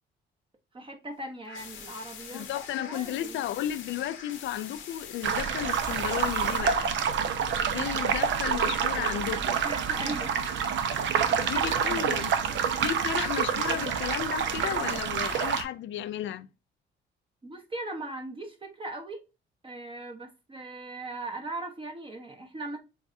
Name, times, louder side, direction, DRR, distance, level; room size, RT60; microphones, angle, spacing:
voice 1, 0.7-3.4 9.6-10.5 11.0-12.1 17.4-19.2 19.6-22.8, right 2 dB, 25° right, 0.9 m, -39 dB
sound 1, 1.4-6.6, left 7 dB, 90° left, 1.4 m, -44 dB
voice 2, 2.3-6.9 7.7-9.6 11.4-12.3 12.8-16.5, left 11 dB, 70° left, 0.4 m, -33 dB
sound 2, 5.2-15.6, right 7 dB, 70° right, 0.7 m, -27 dB
7.1 x 2.4 x 2.6 m
cardioid pair, 90°, 20 cm